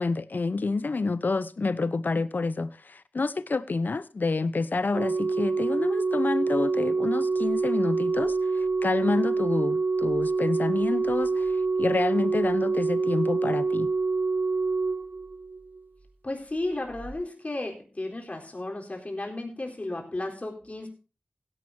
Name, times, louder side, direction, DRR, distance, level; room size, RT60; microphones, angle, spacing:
voice 1, 0.0-11.5 11.8-13.9, left 3 dB, 70° left, 0.8 m, -28 dB
Organ, 4.9-15.8 16.9-17.1, right 4 dB, 85° right, 2.0 m, -26 dB
voice 2, 16.2-20.9, left 2 dB, 45° left, 4.0 m, -34 dB
16.5 x 11.0 x 2.8 m
wide cardioid pair, 55°, 3 cm